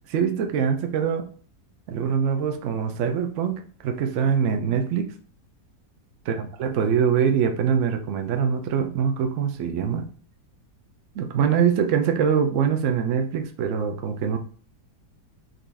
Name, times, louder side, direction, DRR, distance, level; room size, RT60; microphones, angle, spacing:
voice 1, 0.1-1.2 1.9-5.1 6.3-10.1 11.2-14.4, right 7 dB, 65° right, 6 dB, 0.7 m, -23 dB
4.0 x 3.0 x 3.4 m, 0.43 s
omnidirectional pair, 1.7 m